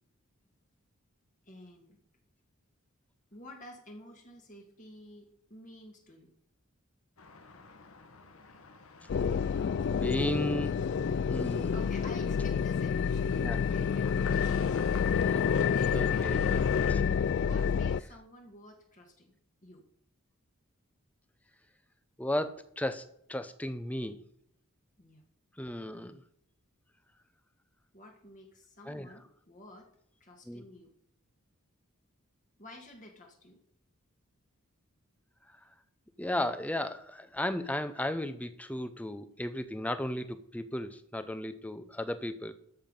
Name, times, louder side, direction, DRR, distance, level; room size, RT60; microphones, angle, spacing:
voice 1, 1.5-2.0 3.3-6.3 11.7-14.8 15.7-17.0 17.4-19.4 19.6-19.8 25.0-25.2 27.9-29.9 30.2-30.9 32.6-33.6, left 1 dB, 35° left, 2 dB, 1.8 m, -51 dB
sound 1, 7.2-17.0, left 4 dB, 80° left, 1.3 m, -48 dB
sound 2, 9.1-18.0, left 6 dB, 55° left, 0.3 m, -28 dB
voice 2, 9.8-10.7 11.3-11.8 13.3-13.6 15.1-15.5 15.9-17.0 22.2-23.0 23.3-24.2 25.6-26.2 28.9-29.1 30.5-30.6 36.2-42.5, left 1 dB, 5° left, 11 dB, 0.7 m, -35 dB
13.0 x 6.9 x 5.5 m, 0.71 s
head